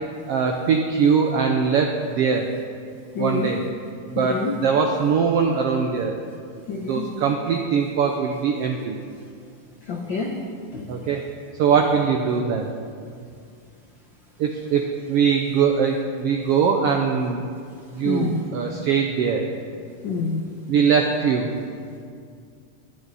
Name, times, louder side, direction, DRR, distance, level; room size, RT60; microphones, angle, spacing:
voice 1, 0.3-2.5 3.2-3.7 4.1-6.1 6.9-9.0 10.9-11.3 11.6-12.7 14.4-17.4 17.9-19.5 20.7-21.6, right 6 dB, 75° right, 3 dB, 1.4 m, -21 dB
voice 2, 3.1-3.5 4.1-4.6 6.7-7.1 9.9-10.4 10.7-10.9 18.0-18.3 20.0-20.4, left 3 dB, 80° left, 1 dB, 1.0 m, -27 dB
19.0 x 10.5 x 4.1 m, 2.2 s
omnidirectional pair, 3.5 m